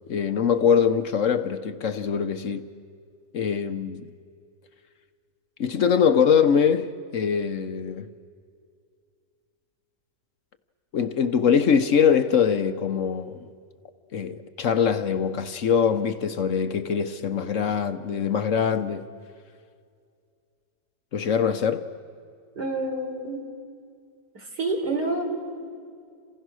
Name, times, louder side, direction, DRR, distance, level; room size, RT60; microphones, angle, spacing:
voice 1, 0.1-2.6 3.3-4.1 5.6-8.1 10.9-13.5 14.1-19.0 21.1-21.9, left 7 dB, 55° left, 1.1 m, -23 dB
voice 2, 22.6-23.4 24.3-25.2, right 2 dB, 85° right, 4.6 m, -28 dB
29.5 x 27.0 x 6.3 m
omnidirectional pair, 1.7 m